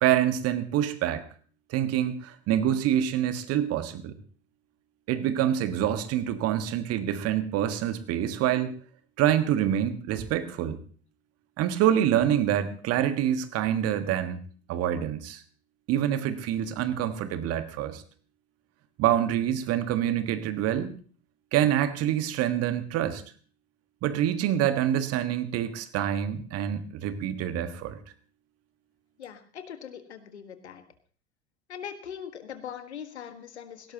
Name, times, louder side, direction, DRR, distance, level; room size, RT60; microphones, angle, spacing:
voice 1, 0.0-1.2 1.7-4.1 5.1-8.7 9.2-10.8 11.6-14.4 14.7-15.4 15.9-18.0 19.0-20.9 21.5-23.2 24.0-28.0, right 11 dB, 45° right, 10 dB, 1.5 m, -26 dB
voice 2, 29.2-30.8 31.7-33.9, left 8 dB, 75° left, 9 dB, 1.6 m, -41 dB
18.5 x 17.5 x 2.9 m, 0.42 s
figure-of-eight pair, 70°, 33 cm